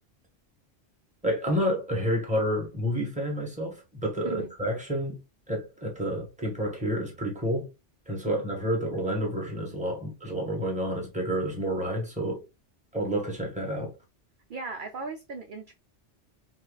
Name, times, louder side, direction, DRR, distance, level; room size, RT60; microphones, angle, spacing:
voice 1, 1.2-5.2 5.5-7.7 8.1-12.4 12.9-13.9, equal, 5° right, 1.2 m, -29 dB
voice 2, 14.5-15.7, right 4 dB, 55° right, 0.6 m, -37 dB
5.5 x 2.2 x 2.3 m
omnidirectional pair, 1.2 m